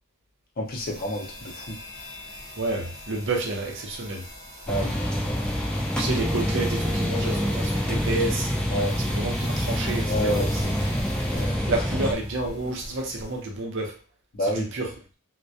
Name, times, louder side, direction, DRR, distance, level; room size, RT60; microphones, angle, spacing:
voice 1, 0.6-1.8 4.7-5.6 8.7-9.0 10.1-10.5 11.3-11.6 14.3-14.7, equal, 45° left, 1 dB, 0.6 m, -29 dB
sound 1, 0.7-13.6, equal, 15° right, 0.7 m, -39 dB
voice 2, 2.6-4.3 6.0-8.5 9.0-11.0 11.7-14.0 14.4-14.9, right 2 dB, 60° right, 2 dB, 0.6 m, -30 dB
sound 2, 4.7-12.1, equal, 5° left, 0.3 m, -26 dB
2.2 x 2.1 x 2.6 m, 0.36 s
head